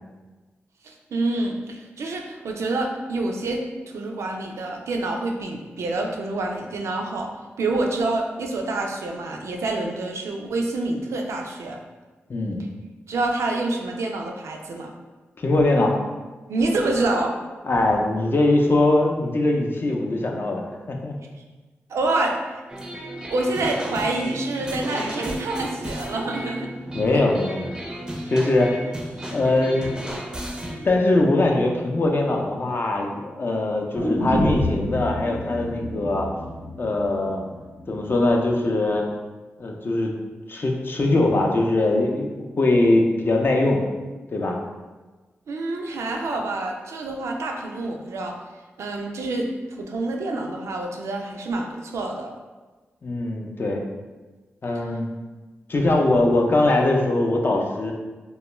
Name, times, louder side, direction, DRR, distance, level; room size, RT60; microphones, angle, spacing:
voice 1, 0.8-3.6 3.9-7.3 7.6-11.8 13.1-14.9 16.5-17.3 21.9-22.6 23.2-26.7 27.1-27.2 45.5-48.3 48.8-49.5 49.8-52.3, right 2 dB, 75° right, 1 dB, 0.3 m, -27 dB
voice 2, 12.3-12.6 15.4-15.9 17.6-21.2 26.9-27.8 28.3-28.8 29.3-29.8 30.8-36.3 36.8-37.4 37.9-39.0 39.6-40.1 40.5-43.8 44.3-44.6 53.0-53.8 54.6-55.1 55.7-57.9, left 2 dB, 45° left, 1 dB, 0.4 m, -21 dB
sound 1, 22.7-30.9, right 1 dB, 15° right, 0.5 m, -34 dB
sound 2, 33.9-38.0 38.3-38.4, left 1 dB, 85° left, 0.7 m, -28 dB
2.3 x 2.1 x 3.0 m, 1.3 s
cardioid pair, 45°, 5 cm